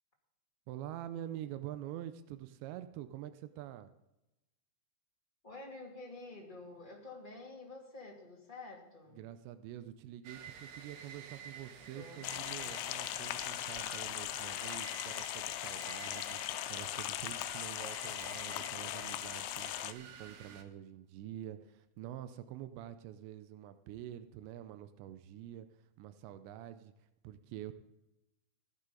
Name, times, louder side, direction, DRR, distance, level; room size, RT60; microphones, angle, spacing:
voice 1, 0.7-3.9 9.1-16.4 16.7-25.7 26.0-26.9 27.2-27.7, right 12 dB, 85° right, 11 dB, 2.9 m, -46 dB
voice 2, 5.4-9.3 11.8-12.3, left 2 dB, 20° left, -1 dB, 1.6 m, -49 dB
sound 1, 10.2-20.6, right 6 dB, 65° right, 2.4 m, -51 dB
sound 2, 12.2-19.9, left 15 dB, 90° left, 2.8 m, -39 dB
15.5 x 11.5 x 3.9 m, 0.92 s
omnidirectional pair, 5.0 m